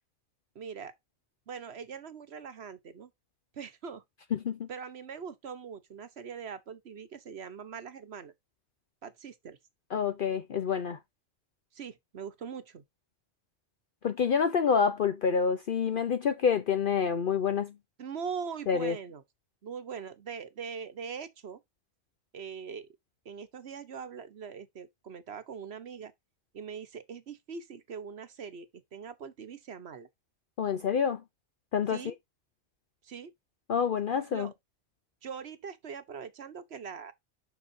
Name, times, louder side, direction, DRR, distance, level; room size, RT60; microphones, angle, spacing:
voice 1, 0.5-1.0 1.5-3.1 3.5-4.0 4.7-8.3 9.0-9.6 11.7-12.8 18.0-19.2 19.6-21.6 22.3-22.9 23.2-26.1 26.5-30.1 31.9-32.1 33.0-33.3 34.3-34.5 35.2-37.1, right 6 dB, 65° right, 1.3 m, -42 dB
voice 2, 4.3-4.7 9.9-11.0 14.0-17.8 18.7-19.0 30.6-31.2 31.7-32.1 33.7-34.5, left 6 dB, 55° left, 0.8 m, -27 dB
7.0 x 6.0 x 2.6 m
omnidirectional pair, 1.2 m